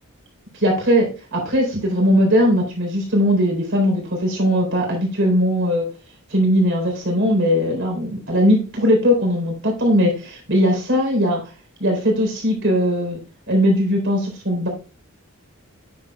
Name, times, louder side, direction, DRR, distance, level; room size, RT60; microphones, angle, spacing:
voice 1, 0.6-5.9 6.3-11.4 11.8-13.2 13.5-14.7, equal, 60° right, 1 dB, 3.9 m, -19 dB
9.6 x 7.4 x 2.3 m, 0.34 s
head